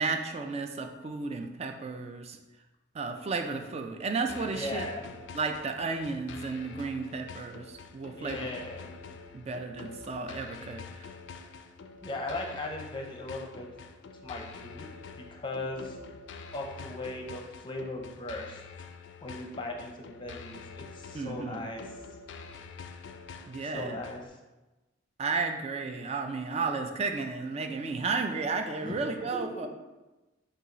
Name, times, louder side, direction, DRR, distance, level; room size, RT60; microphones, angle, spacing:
voice 1, 0.0-2.4 2.9-4.9 5.3-8.5 8.9-9.0 9.3-11.1 21.1-21.6 23.5-24.0 25.2-29.7, right 4 dB, 35° right, 5 dB, 0.4 m, -33 dB
sound 1, 4.3-24.3, left 5 dB, 75° left, 0.3 m, -46 dB
voice 2, 4.4-5.0 8.1-8.8 12.0-13.7 14.2-16.0 16.5-18.6 19.2-21.8 23.6-24.4 28.8-29.7, left 2 dB, 25° left, 1 dB, 0.6 m, -38 dB
5.6 x 2.4 x 3.9 m, 1.1 s
head